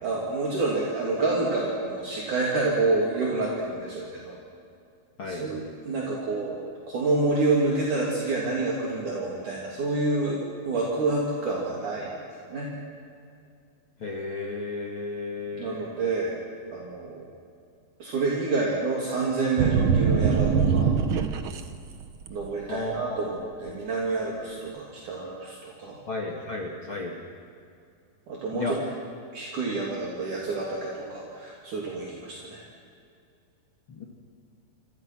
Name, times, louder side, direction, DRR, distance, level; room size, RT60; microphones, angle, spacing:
voice 1, 0.0-4.4 5.3-6.6 6.9-12.2 12.5-12.7 15.5-16.3 16.7-17.2 18.0-20.9 22.3-26.0 28.3-28.8 29.3-32.6, right 3 dB, 55° right, -4 dB, 4.4 m, -28 dB
voice 2, 14.0-15.8 22.7-23.5 26.1-27.1 28.5-28.8 33.9-34.0, left 3 dB, 40° left, -1 dB, 2.5 m, -33 dB
sound 1, 19.6-21.6 22.0-22.5, right 6 dB, 70° right, 1.2 m, -22 dB
27.5 x 27.5 x 6.2 m, 2.4 s
omnidirectional pair, 4.3 m